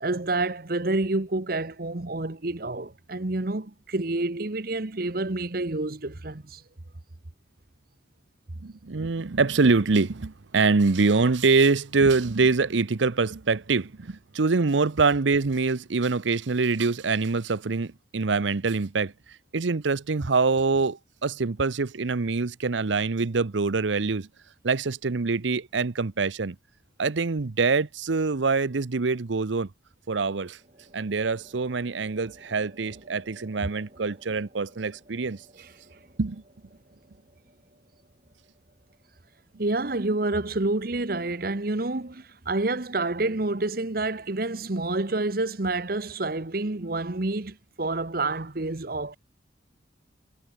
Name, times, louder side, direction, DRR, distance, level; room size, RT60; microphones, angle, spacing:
voice 1, 0.0-6.6 33.6-33.7 39.6-49.2, right 2 dB, 55° right, 1.2 m, -28 dB
voice 2, 8.6-19.1 19.5-24.3 24.6-26.6 27.0-29.7 30.1-30.6 30.9-35.4 36.2-36.4, right 4 dB, 85° right, 0.8 m, -24 dB
sound 1, 30.1-41.5, right 1 dB, 35° right, 7.9 m, -57 dB
head